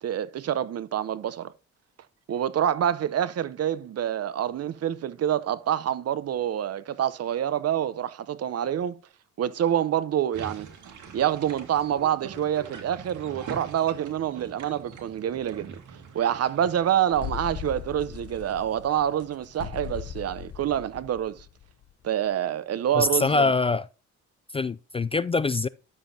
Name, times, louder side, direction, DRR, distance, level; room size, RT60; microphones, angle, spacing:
voice 1, 0.0-1.5 2.3-9.0 9.4-10.7 11.1-15.8 16.1-21.4 22.0-23.4, right 10 dB, 55° right, 0.7 m, -27 dB
sound 1, 10.3-20.1, right 5 dB, 75° right, 2.3 m, -45 dB
sound 2, 17.1-21.9, left 10 dB, 50° left, 1.1 m, -39 dB
voice 2, 22.9-23.9 24.5-25.7, left 3 dB, 20° left, 0.3 m, -24 dB
11.0 x 7.2 x 2.8 m
cardioid pair, 90°, 30 cm